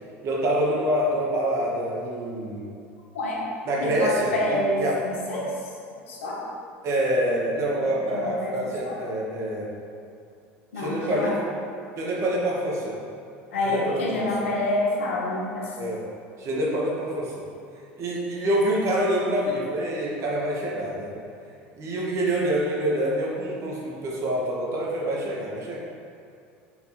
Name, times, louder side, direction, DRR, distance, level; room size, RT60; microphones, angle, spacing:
voice 1, 0.2-2.7 3.7-5.0 6.8-9.7 10.8-11.4 12.0-13.0 13.6-14.3 15.8-16.0 16.4-17.5 18.0-21.1 21.8-25.8, right 1 dB, 45° right, -3 dB, 1.0 m, -26 dB
voice 2, 3.8-5.6 6.1-6.4 7.8-8.6 8.9-9.0 10.7-11.4 13.5-15.7, left 1 dB, 90° left, -3 dB, 0.9 m, -27 dB
4.3 x 2.7 x 4.2 m, 2.5 s
hypercardioid pair, 90°, 7 cm